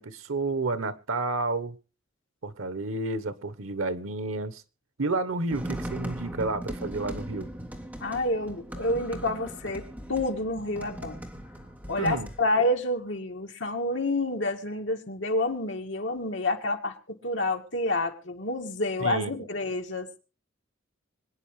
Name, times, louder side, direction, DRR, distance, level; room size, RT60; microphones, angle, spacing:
voice 1, 0.0-1.8 2.4-4.6 5.0-7.5 12.0-12.3 19.0-19.4, right 3 dB, 90° right, 1.1 m, -30 dB
sound 1, 5.5-12.4, right 1 dB, 10° right, 2.1 m, -39 dB
voice 2, 8.0-9.8 10.1-11.2 11.9-20.1, left 2 dB, 65° left, 2.1 m, -28 dB
26.0 x 9.6 x 3.2 m
head